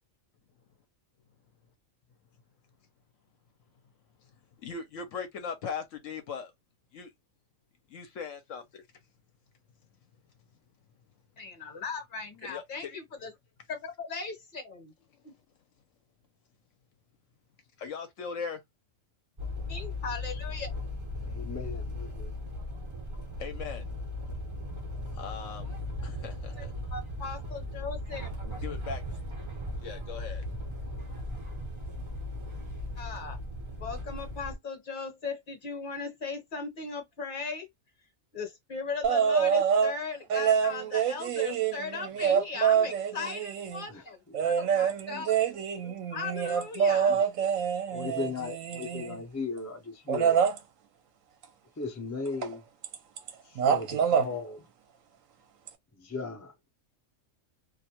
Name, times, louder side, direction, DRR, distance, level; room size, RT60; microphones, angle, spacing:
voice 1, 4.6-6.5 6.9-7.1 7.9-8.6 12.5-13.0 17.8-18.6 23.4-23.9 25.2-25.8 26.0-26.7 28.4-29.0 29.8-30.5, left 6 dB, 70° left, 1.0 m, -39 dB
voice 2, 11.4-13.3 13.7-14.9 15.2-15.3 19.7-20.7 26.6-28.3 33.0-33.4 33.8-37.7 38.3-44.2 44.4-45.4 46.1-47.1, left 4 dB, 45° left, 0.9 m, -38 dB
sound 1, 19.4-34.6, left 1 dB, 30° right, 0.6 m, -37 dB
voice 3, 21.2-22.3 43.9-44.5 44.8-45.2 45.5-46.0 47.1-47.2 47.9-50.4 51.8-52.6 53.4-54.7 55.9-56.5, left 4 dB, 20° left, 0.4 m, -38 dB
sound 2, 39.0-39.9 40.3-43.8 44.3-49.2 50.1-50.6 52.4-52.5 52.8-53.3 53.6-54.3 55.7-55.8, right 7 dB, 75° right, 0.9 m, -26 dB
2.5 x 2.1 x 2.8 m
omnidirectional pair, 1.4 m